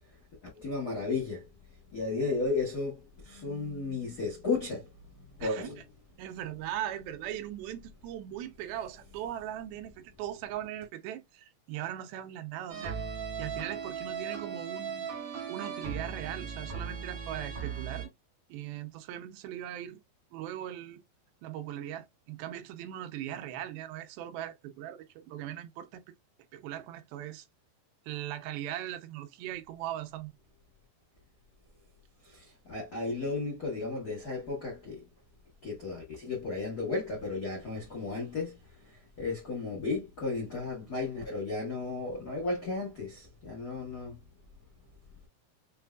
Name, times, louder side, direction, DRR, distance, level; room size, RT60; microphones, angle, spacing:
voice 1, 0.5-1.4 1.9-3.0 3.2-4.9 5.4-5.8 32.3-35.0 35.6-38.5 39.2-44.2, left 3 dB, 80° left, 0.8 m, -34 dB
voice 2, 6.2-13.0 13.4-15.1 15.5-18.1 18.5-20.0 20.3-21.0 21.4-26.0 26.5-27.5 28.1-30.3, right 12 dB, 85° right, 2.5 m, -39 dB
sound 1, 12.7-18.1, right 6 dB, 50° right, 1.4 m, -37 dB
6.5 x 2.5 x 2.2 m
omnidirectional pair, 4.3 m